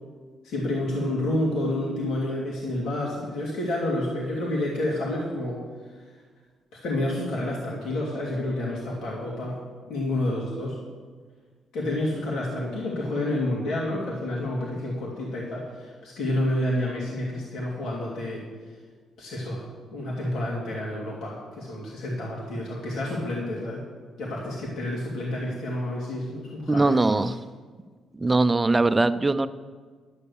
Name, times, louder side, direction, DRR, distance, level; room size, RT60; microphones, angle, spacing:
voice 1, 0.4-5.6 6.8-9.6 9.9-10.8 11.7-18.4 19.2-19.6 19.9-23.8 24.2-27.0, left 1 dB, 80° left, -4 dB, 2.4 m, -29 dB
voice 2, 26.7-27.4 28.1-29.5, right 2 dB, 20° right, 11 dB, 0.5 m, -21 dB
12.0 x 6.7 x 6.8 m, 1.5 s
cardioid pair, 90°, 0 cm